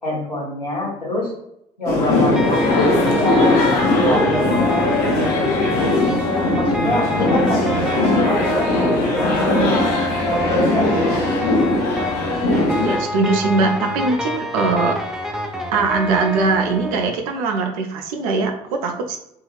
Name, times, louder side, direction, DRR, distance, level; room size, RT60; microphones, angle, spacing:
voice 1, 0.0-1.3 1.8-4.9 6.0-9.6 10.2-11.3, left 1 dB, 85° left, -6 dB, 1.0 m, -25 dB
sound 1, 1.8-13.0, left 2 dB, 55° left, 0.7 m, -19 dB
sound 2, 2.3-17.1, equal, 5° right, 0.4 m, -27 dB
voice 2, 12.8-15.0 15.7-19.2, right 3 dB, 65° right, 4 dB, 0.5 m, -21 dB
2.6 x 2.3 x 3.2 m, 0.78 s
figure-of-eight pair, 55°, 20 cm